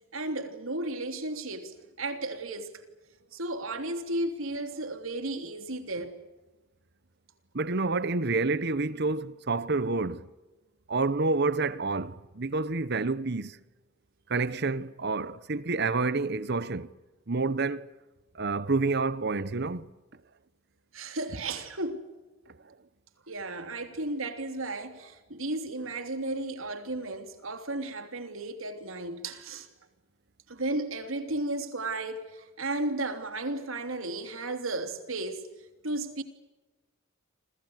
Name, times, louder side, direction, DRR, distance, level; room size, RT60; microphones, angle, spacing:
voice 1, 0.1-2.7 3.3-6.2 20.9-22.0 23.3-29.7 30.5-35.5 35.8-36.2, right 2 dB, 75° right, 3.3 m, -34 dB
voice 2, 7.5-10.3 10.9-13.6 14.3-16.9 17.3-17.9 18.3-19.9, right 3 dB, 55° right, 1.0 m, -28 dB
29.0 x 26.0 x 6.6 m
head